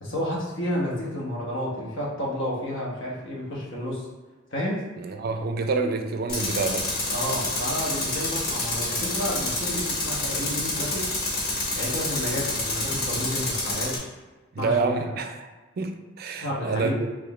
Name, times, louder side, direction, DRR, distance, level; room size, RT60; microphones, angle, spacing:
voice 1, 0.0-4.1 4.5-4.9 7.1-11.1 11.7-14.1 14.6-15.0 16.4-17.0, equal, 85° left, -4 dB, 1.0 m, -31 dB
voice 2, 5.0-6.9 14.6-15.5 15.8-17.1, right 4 dB, 55° right, 6 dB, 0.4 m, -27 dB
Tools, 6.3-14.0, left 2 dB, 55° left, 1.0 m, -28 dB
3.5 x 3.2 x 2.3 m, 1.2 s
head